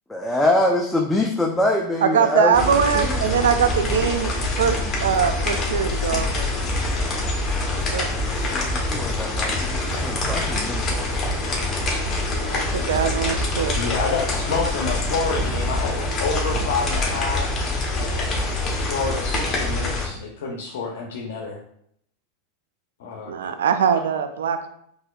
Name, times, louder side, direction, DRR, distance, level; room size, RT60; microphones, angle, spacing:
voice 1, 0.1-3.2 7.6-11.2, left 1 dB, 5° left, -1 dB, 0.4 m, -25 dB
voice 2, 2.0-6.5 7.9-8.1 12.4-13.8 23.3-24.7, right 7 dB, 90° right, 9 dB, 0.3 m, -22 dB
sound 1, 2.5-20.1, left 2 dB, 30° left, 1.0 m, -25 dB
voice 3, 13.7-17.5 17.9-18.5 18.9-21.6 23.0-23.3, left 4 dB, 75° left, 0 dB, 0.6 m, -28 dB
4.1 x 2.7 x 2.3 m, 0.70 s
hypercardioid pair, 120°, 0 cm